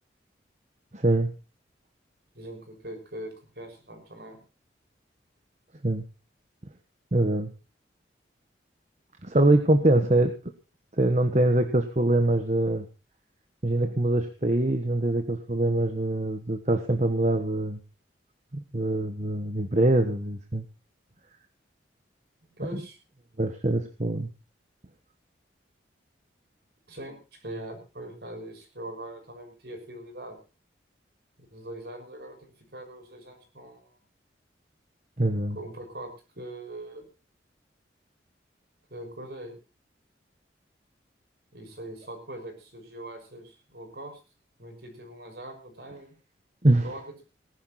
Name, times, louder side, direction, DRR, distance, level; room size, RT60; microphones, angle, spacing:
voice 1, 0.9-1.3 5.8-6.0 7.1-7.5 9.2-10.3 11.0-12.8 13.6-17.8 18.5-20.6 22.7-22.8 23.4-24.3 35.2-35.6 46.6-46.9, right 1 dB, 40° right, 7 dB, 1.3 m, -24 dB
voice 2, 2.3-4.4 22.5-23.0 26.9-30.4 31.4-33.9 35.5-36.1 36.3-37.1 38.9-39.6 41.5-44.2 44.6-46.1 46.8-47.1, right 1 dB, 60° right, 4 dB, 6.2 m, -41 dB
19.0 x 11.5 x 4.3 m, 0.33 s
head